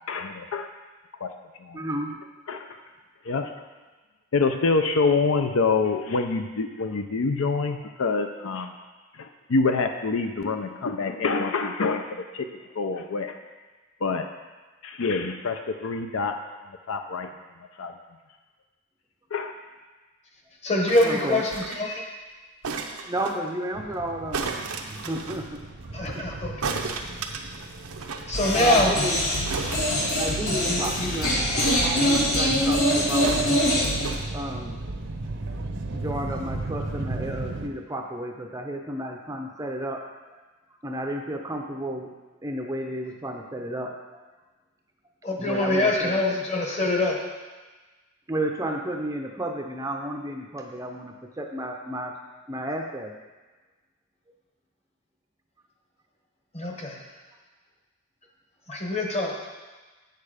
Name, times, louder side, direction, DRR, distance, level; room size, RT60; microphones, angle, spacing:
voice 1, 0.1-0.7 1.2-1.3 1.6-1.8 2.5-2.7 3.2-3.5 4.3-8.7 9.2-12.5 12.8-13.3 14.0-14.3 14.8-16.4 16.9-17.3 17.8-17.9 19.3-19.5, left 4 dB, 65° left, 6 dB, 0.5 m, -26 dB
voice 2, 1.7-2.2 2.5-2.6 21.0-21.4 23.1-24.5 24.8-26.2 28.5-29.2 30.2-33.3 34.3-34.8 35.9-40.0 40.3-40.4 40.8-42.1 42.4-44.2 45.4-46.2 48.3-52.1 52.5-53.1, right 1 dB, 15° right, 2 dB, 0.5 m, -32 dB
voice 3, 20.6-22.0 25.9-26.7 28.1-28.9 30.5-31.1 45.2-47.2 56.5-57.0 58.7-59.3, left 1 dB, 30° left, 0 dB, 1.2 m, -24 dB
sound 1, 20.9-21.9 22.6-23.4 24.3-25.4 26.6-28.3 28.6-28.7 28.9-29.0 29.5-30.6 31.6-32.5 33.2-34.2 34.9-35.0, right 4 dB, 85° right, 0.7 m, -34 dB
sound 2, 23.7-37.7, right 2 dB, 55° right, 0.7 m, -36 dB
sound 3, 28.3-34.2, equal, 85° left, 2.0 m, -24 dB
8.3 x 6.7 x 5.0 m, 1.3 s
head